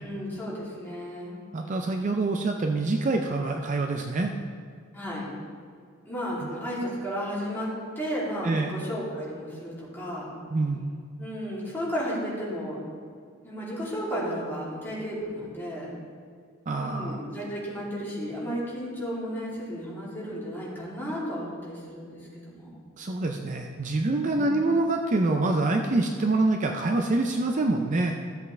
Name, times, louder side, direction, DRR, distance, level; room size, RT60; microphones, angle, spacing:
voice 1, 0.0-1.4 4.9-5.3 6.0-10.3 11.2-12.8 13.4-15.9 16.7-22.7 24.2-24.6, equal, 10° left, -8 dB, 2.9 m, -33 dB
voice 2, 1.5-4.3 6.4-6.5 8.4-8.7 10.5-10.8 16.7-17.2 23.0-28.2, right 2 dB, 40° right, 3 dB, 0.5 m, -26 dB
14.5 x 7.8 x 3.3 m, 2.1 s
head